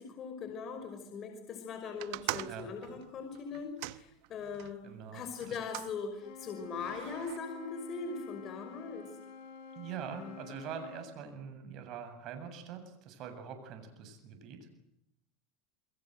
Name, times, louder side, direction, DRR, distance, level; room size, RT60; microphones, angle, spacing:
voice 1, 0.0-9.2 10.1-10.4, left 5 dB, 40° left, 5 dB, 5.6 m, -41 dB
sound 1, 2.0-4.8 5.4-5.9 6.7-7.4, right 21 dB, 70° right, 1.0 m, -42 dB
voice 2, 4.8-5.6 9.7-14.6, right 7 dB, 50° right, 7 dB, 7.7 m, -44 dB
Wind instrument woodwind instrument, 6.1-11.1, left 5 dB, 65° left, 7.2 m, -49 dB
29.0 x 22.5 x 8.0 m, 0.78 s
supercardioid pair, 120°, 0 cm